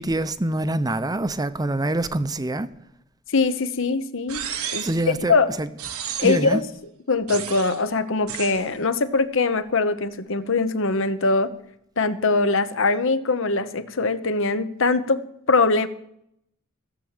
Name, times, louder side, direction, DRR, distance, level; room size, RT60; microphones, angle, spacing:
voice 1, 0.0-2.7 4.8-5.7 6.2-6.6, right 2 dB, 20° right, 0.6 m, -25 dB
voice 2, 3.3-4.4 4.7-5.5 6.2-6.6 7.1-11.5 12.0-15.2 15.5-15.9, left 3 dB, 65° left, 1.0 m, -22 dB
sound 1, 4.3-5.1 5.8-6.5 7.3-7.8 8.3-8.6, right 9 dB, 90° right, 1.3 m, -32 dB
16.0 x 7.4 x 9.0 m
head